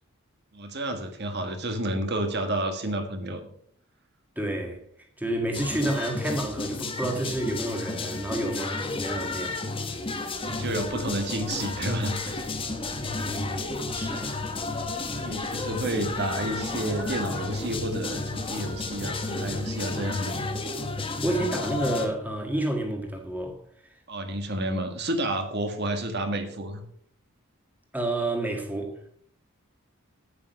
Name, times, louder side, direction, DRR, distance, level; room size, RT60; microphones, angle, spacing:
voice 1, 0.5-3.4 10.3-12.5 15.1-20.5 24.1-26.8, right 1 dB, 50° right, 1.6 m, -30 dB
voice 2, 4.3-4.8 5.2-9.6 9.9-10.0 13.0-14.3 21.2-23.6 27.9-29.0, right 1 dB, 10° right, 1.8 m, -30 dB
sound 1, 5.5-22.1, left 3 dB, 25° left, 1.1 m, -32 dB
sound 2, 10.3-19.6, right 1 dB, 85° right, 2.9 m, -48 dB
8.6 x 8.5 x 5.4 m
head